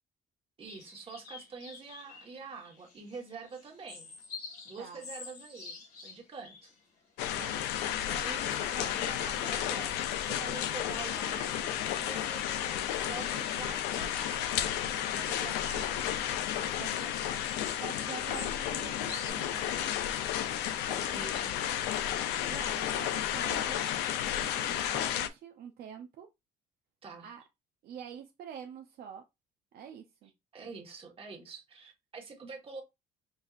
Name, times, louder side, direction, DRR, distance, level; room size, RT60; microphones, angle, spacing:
voice 1, 0.6-4.1 4.6-5.8 6.0-6.7 8.0-16.1 16.7-17.6 20.9-21.8 27.0-27.3 30.5-32.8, right 4 dB, 35° right, 1.4 m, -46 dB
sound 1, 0.7-19.3, left 4 dB, 70° left, 1.7 m, -51 dB
sound 2, 7.2-25.3, left 11 dB, 90° left, 0.5 m, -32 dB
voice 2, 16.6-17.0 17.8-20.0 22.5-23.9 24.4-26.3 27.2-27.4 27.8-29.2 29.7-30.3, right 8 dB, 65° right, 0.6 m, -46 dB
5.3 x 2.6 x 2.4 m
cardioid pair, 110°, 17 cm